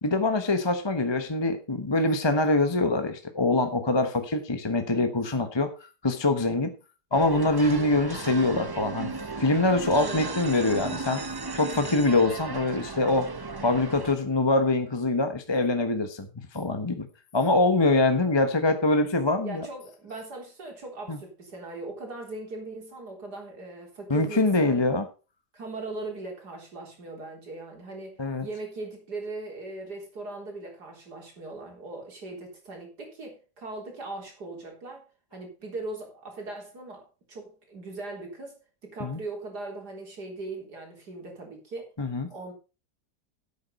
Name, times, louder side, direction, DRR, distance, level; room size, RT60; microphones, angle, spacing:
voice 1, 0.0-5.7 6.0-6.7 7.1-9.1 9.4-11.2 11.5-13.3 13.6-16.3 16.5-17.1 17.3-19.7 21.1-21.2 24.1-25.0 28.2-28.5 39.0-39.2 42.0-42.3, left 2 dB, 20° left, 1.0 m, -24 dB
sound 1, 7.1-14.1, right 3 dB, 25° right, 0.4 m, -35 dB
voice 2, 10.0-10.4 19.4-24.8 25.5-35.0 35.3-41.9 42.3-42.5, right 2 dB, 70° right, 4.3 m, -39 dB
10.5 x 8.7 x 5.3 m
omnidirectional pair, 1.8 m